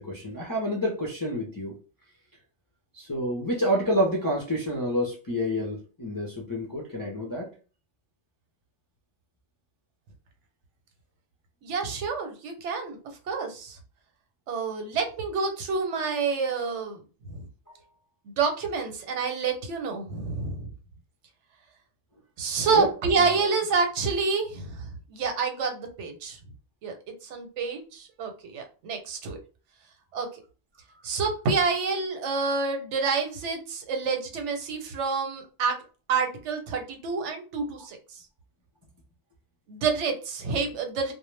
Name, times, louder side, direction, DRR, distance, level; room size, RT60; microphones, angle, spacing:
voice 1, 0.0-1.8 2.9-7.5 17.7-17.8 22.7-22.9 23.2-23.5, equal, 35° left, -3 dB, 0.3 m, -28 dB
voice 2, 11.6-13.0 13.3-13.8 14.5-17.0 17.3-17.5 18.4-20.7 22.4-26.4 26.8-26.9 27.2-29.4 30.1-30.3 31.0-35.8 36.1-38.2 39.7-41.1, right 4 dB, 90° right, 4 dB, 1.0 m, -28 dB
2.1 x 2.0 x 3.1 m, 0.36 s
omnidirectional pair, 1.2 m